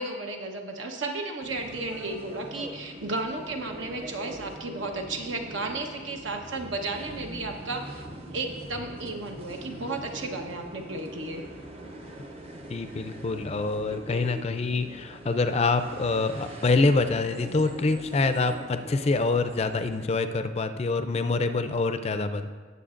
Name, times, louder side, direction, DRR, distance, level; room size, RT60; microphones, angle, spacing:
voice 1, 0.0-8.1 8.3-11.4, right 2 dB, 80° right, 3 dB, 1.0 m, -33 dB
sound 1, 1.4-20.1, right 1 dB, 30° right, 0.8 m, -42 dB
voice 2, 12.7-22.5, left 3 dB, 30° left, 9 dB, 0.4 m, -26 dB
17.0 x 7.0 x 2.5 m, 1.5 s
head